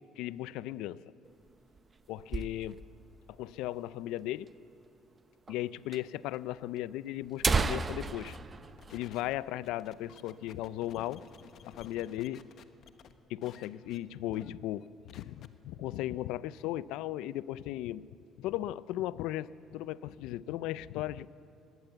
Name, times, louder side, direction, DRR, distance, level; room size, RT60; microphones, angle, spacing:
voice 1, 0.2-1.0 2.1-2.8 3.4-4.5 5.5-8.3 8.9-11.2 11.6-12.4 13.3-18.1 18.4-21.3, left 14 dB, 85° left, 18 dB, 0.5 m, -36 dB
sound 1, 1.2-3.1 3.4-3.5 3.7-3.8 4.5-4.6 5.5-5.6 5.9-6.0 6.8-6.9 7.2-9.8 10.1-10.3 10.7-10.9 11.3-11.9, right 4 dB, 30° right, 0.8 m, -34 dB
sound 2, 7.4-13.1 13.4-14.0 14.3-14.5 14.8-15.5, left 8 dB, 60° left, 1.1 m, -55 dB
20.0 x 17.5 x 8.1 m, 2.6 s
supercardioid pair, 85°, 0 cm